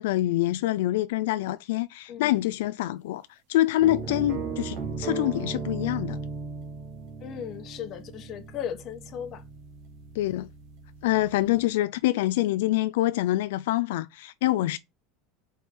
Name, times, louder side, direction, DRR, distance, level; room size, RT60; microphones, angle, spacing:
voice 1, 0.0-6.2 10.1-10.5 11.0-14.8, left 15 dB, 85° left, 0.4 m, -26 dB
voice 2, 2.1-2.4 7.2-9.4, left 9 dB, 35° left, 1.2 m, -37 dB
sound 1, 3.8-11.7, right 5 dB, 55° right, 1.8 m, -37 dB
4.7 x 4.4 x 5.3 m
supercardioid pair, 150°, 0 cm